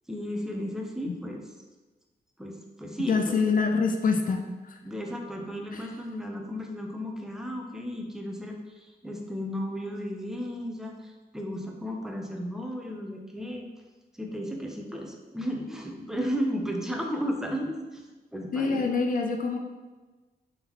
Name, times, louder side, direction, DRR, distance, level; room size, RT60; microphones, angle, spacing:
voice 1, 0.1-1.5 2.4-3.6 4.8-13.7 14.1-18.1 18.3-18.9, equal, 5° right, 1 dB, 0.6 m, -34 dB
voice 2, 3.1-4.8 5.7-5.8 18.5-19.6, left 4 dB, 55° left, 4 dB, 0.4 m, -26 dB
3.6 x 3.6 x 3.0 m, 1.2 s
cardioid pair, 90°, 17 cm